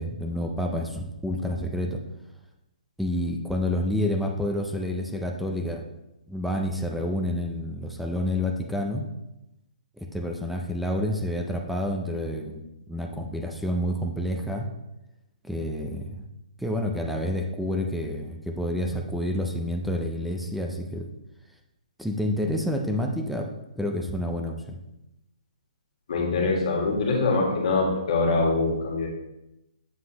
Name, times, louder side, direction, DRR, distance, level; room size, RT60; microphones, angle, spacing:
voice 1, 0.0-2.0 3.0-5.8 6.3-9.0 10.0-12.6 12.9-14.7 15.4-16.2 16.6-21.1 22.0-23.5 23.8-24.8, left 1 dB, ahead, 2 dB, 0.4 m, -29 dB
voice 2, 26.1-29.1, left 3 dB, 50° left, -1 dB, 1.8 m, -24 dB
7.4 x 5.8 x 2.9 m, 0.92 s
hypercardioid pair, 165°, 4 cm